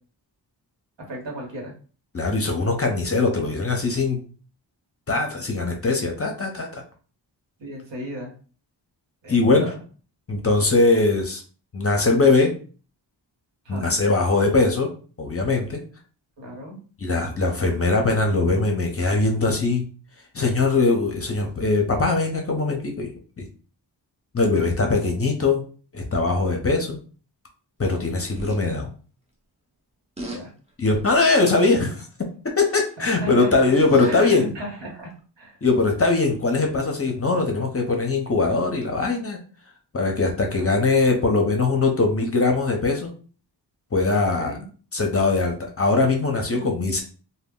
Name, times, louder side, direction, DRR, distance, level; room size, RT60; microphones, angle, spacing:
voice 1, 1.1-1.7 7.6-8.3 9.2-9.8 13.6-13.9 16.4-16.8 30.2-30.5 33.0-33.5 34.0-35.6 40.5-40.7 44.4-44.6 46.5-46.7, right 1 dB, 75° right, 0 dB, 1.1 m, -35 dB
voice 2, 2.1-4.2 5.1-6.8 9.3-9.7 10.3-11.4 11.7-12.5 13.7-14.9 15.2-15.8 17.0-19.8 20.3-23.1 23.4-23.5 24.3-25.6 25.9-27.0 27.8-28.9 30.8-32.1 32.4-34.5 35.6-39.4 39.9-43.1 43.9-44.5 44.9-47.0, left 3 dB, 30° left, 2 dB, 0.6 m, -21 dB
sound 1, 28.4-28.6 30.2-30.4 30.9-31.2 32.6-32.9 33.6-34.2 35.2-35.3, right 1 dB, 15° right, 0.7 m, -37 dB
2.2 x 2.1 x 3.6 m, 0.40 s
wide cardioid pair, 75°, 44 cm